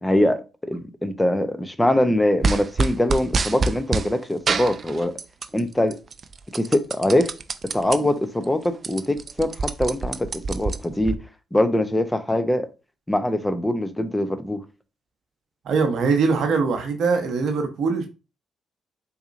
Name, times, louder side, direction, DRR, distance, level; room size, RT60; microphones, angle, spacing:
voice 1, 0.0-5.1 5.5-6.0 6.5-7.3 7.7-11.2 11.5-12.7 13.1-14.6, left 1 dB, 10° left, 0.6 m, -23 dB
sound 1, 2.4-4.1 4.5-5.6 5.9-8.0 8.4-8.5 8.7-11.1, right 4 dB, 45° right, 0.4 m, -26 dB
voice 2, 15.6-18.1, right 4 dB, 70° right, 0.8 m, -22 dB
4.1 x 2.8 x 2.5 m
supercardioid pair, 55°, 0 cm